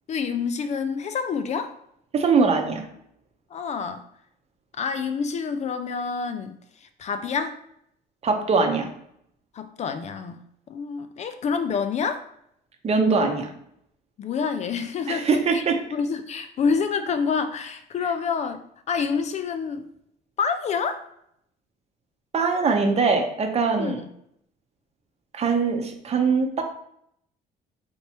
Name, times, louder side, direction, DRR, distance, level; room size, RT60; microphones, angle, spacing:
voice 1, 0.1-1.7 3.5-4.0 4.7-7.6 9.5-12.2 14.2-15.6 15.9-18.6 18.9-19.8 20.4-21.0 23.8-24.1, left 5 dB, 40° left, 9 dB, 0.4 m, -27 dB
voice 2, 2.1-2.8 8.2-8.9 12.8-13.5 15.1-15.7 22.3-24.0 25.3-26.6, right 4 dB, 40° right, 4 dB, 0.8 m, -22 dB
4.2 x 3.3 x 2.9 m, 0.72 s
cardioid pair, 110°, 17 cm